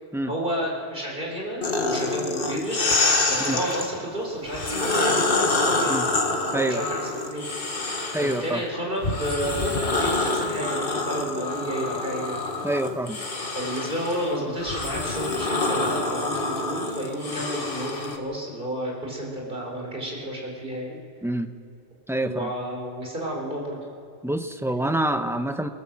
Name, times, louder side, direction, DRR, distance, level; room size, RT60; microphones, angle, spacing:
voice 1, 0.3-3.0 3.3-5.9 6.5-6.8 7.3-7.4 8.2-12.4 13.5-21.0 22.2-23.8, right 1 dB, 50° right, -2 dB, 4.7 m, -31 dB
sound 1, 1.6-3.9 4.5-8.5 9.0-18.2, left 3 dB, 55° left, 1.8 m, -26 dB
voice 2, 6.5-6.8 8.1-8.6 12.6-13.2 21.2-21.5 22.1-22.5 24.2-25.7, right 1 dB, 5° right, 7 dB, 0.8 m, -26 dB
24.0 x 18.0 x 7.6 m, 2.4 s
omnidirectional pair, 1.1 m